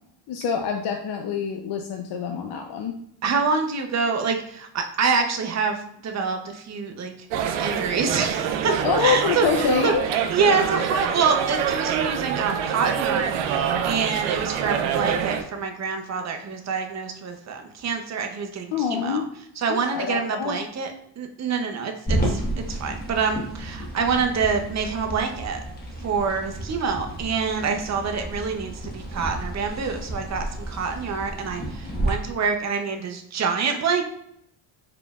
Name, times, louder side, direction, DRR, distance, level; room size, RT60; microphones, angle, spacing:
voice 1, 0.3-3.0 8.8-10.1 18.7-19.3 19.7-20.6, left 7 dB, 60° left, 2 dB, 0.6 m, -25 dB
voice 2, 3.2-7.1 7.6-9.9 10.3-19.2 19.6-20.9 21.2-22.4 22.7-25.6 26.0-34.0, right 5 dB, 35° right, 4 dB, 0.7 m, -26 dB
sound 1, 7.3-15.4, right 8 dB, 90° right, 0.6 m, -26 dB
sound 2, 22.1-32.1, right 1 dB, 20° left, 1.2 m, -31 dB
4.9 x 3.3 x 2.3 m, 0.73 s
cardioid pair, 90°, 47 cm